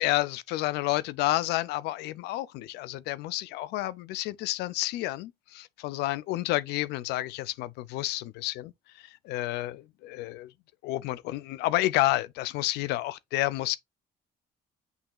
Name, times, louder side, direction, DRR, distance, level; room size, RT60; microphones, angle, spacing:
voice 1, 0.0-8.7 9.0-10.5 10.8-13.8, left 17 dB, 85° left, 0.4 m, -30 dB
8.0 x 2.8 x 2.3 m
cardioid pair, 110°, 17 cm